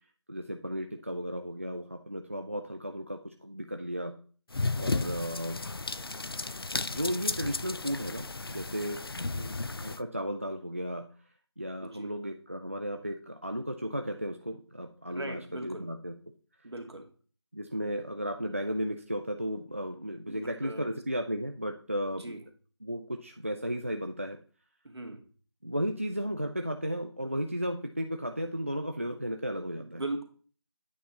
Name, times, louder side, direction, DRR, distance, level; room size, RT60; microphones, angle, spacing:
voice 1, 0.3-4.1 4.8-5.6 6.9-9.0 9.8-11.1 11.6-16.1 17.5-22.3 22.8-24.4 25.6-30.0, equal, 30° right, 4 dB, 0.4 m, -34 dB
sound 1, 4.5-10.0, left 3 dB, 55° left, 0.5 m, -34 dB
voice 2, 4.7-5.2 9.3-9.6 11.8-12.1 15.1-15.9 16.6-17.1 20.3-21.0 22.2-22.4 24.8-25.2 29.8-30.2, right 2 dB, 65° right, 4 dB, 2.2 m, -40 dB
8.5 x 5.6 x 4.1 m, 0.41 s
figure-of-eight pair, 170°, 15 cm